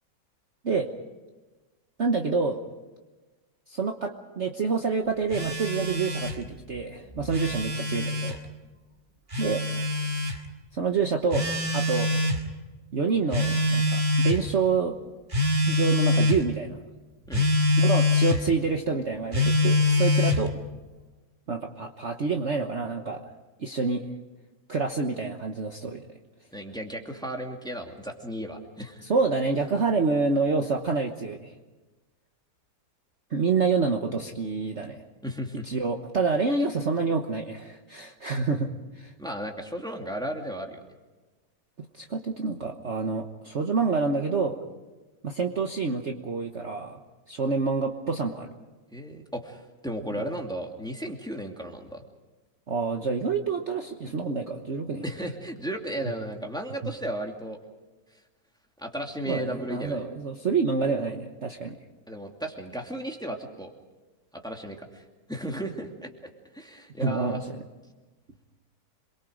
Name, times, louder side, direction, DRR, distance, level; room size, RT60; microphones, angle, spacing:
voice 1, 2.0-2.6 3.7-8.4 9.4-9.6 10.7-12.1 12.9-15.0 15.6-16.8 17.8-20.5 21.5-23.3 23.6-24.0 24.7-26.1 29.1-31.5 33.3-35.0 35.6-38.7 39.0-39.1 41.8-44.6 45.2-47.0 47.3-48.5 50.1-50.3 52.7-55.0 56.8-56.9 59.3-61.8 67.0-67.6, right 4 dB, 45° right, 3 dB, 1.4 m, -27 dB
Telephone, 5.3-6.4 7.2-8.4 9.3-10.4 11.3-12.4 13.3-14.4 15.3-16.4 17.3-18.4 19.3-20.5, left 2 dB, 30° right, 2.1 m, -24 dB
voice 2, 26.5-29.0 35.2-35.6 39.2-40.8 48.9-52.0 55.0-57.6 58.8-60.0 62.1-63.7 64.3-65.0 65.3-67.4, right 1 dB, ahead, 2 dB, 2.3 m, -35 dB
27.0 x 22.5 x 5.1 m, 1.2 s
omnidirectional pair, 1.9 m